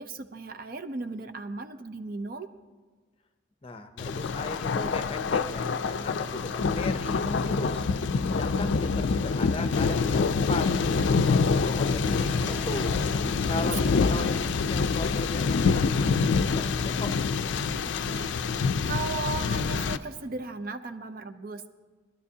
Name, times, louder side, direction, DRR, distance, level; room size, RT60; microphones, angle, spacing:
voice 1, 0.0-2.5 13.2-13.7 14.1-14.3 17.8-21.7, right 3 dB, 45° right, 10 dB, 0.5 m, -37 dB
voice 2, 3.6-7.9 8.3-13.0 13.5-17.1, left 2 dB, 30° left, 8 dB, 0.6 m, -38 dB
Thunder, 4.0-20.0, left 4 dB, 70° left, 0.4 m, -26 dB
Waves surf, 11.8-13.3, equal, 5° right, 1.6 m, -42 dB
20.5 x 12.0 x 2.8 m, 1.4 s
head